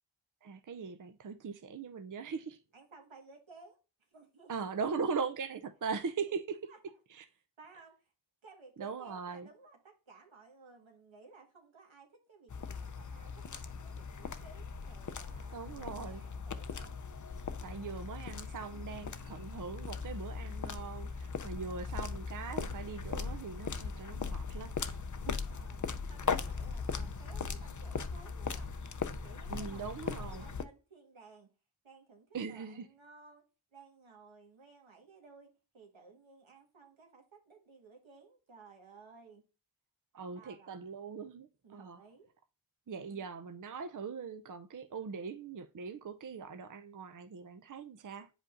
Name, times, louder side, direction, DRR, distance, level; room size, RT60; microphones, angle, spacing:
voice 1, 0.4-2.6 4.5-6.6 7.1-7.2 8.8-9.5 15.5-16.2 17.6-25.0 25.3-25.4 29.5-30.5 32.3-32.9 40.1-42.0 42.9-48.3, right 5 dB, 45° right, 0.6 m, -40 dB
voice 2, 2.7-3.8 4.1-4.5 6.7-6.8 7.6-8.1 8.4-17.0 17.6-18.1 19.2-19.5 21.7-22.2 25.2-28.8 29.2-31.5 31.8-33.4 33.7-39.4 40.3-40.8 41.6-42.3, right 4 dB, 85° right, 1.7 m, -57 dB
sound 1, 12.5-30.6, left 5 dB, 40° left, 0.6 m, -39 dB
8.4 x 5.1 x 2.6 m
cardioid pair, 45°, 46 cm